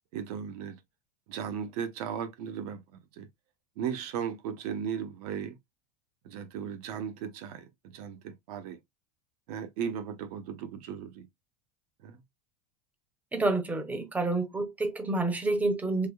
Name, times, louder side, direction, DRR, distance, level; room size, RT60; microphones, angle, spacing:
voice 1, 0.1-0.8 1.3-2.8 3.2-3.3 3.8-5.6 6.2-8.8 9.5-11.3 12.0-12.2, right 8 dB, 70° right, 0.8 m, -36 dB
voice 2, 13.3-16.1, right 2 dB, 5° right, 0.7 m, -28 dB
3.4 x 3.2 x 2.2 m
supercardioid pair, 150°, 21 cm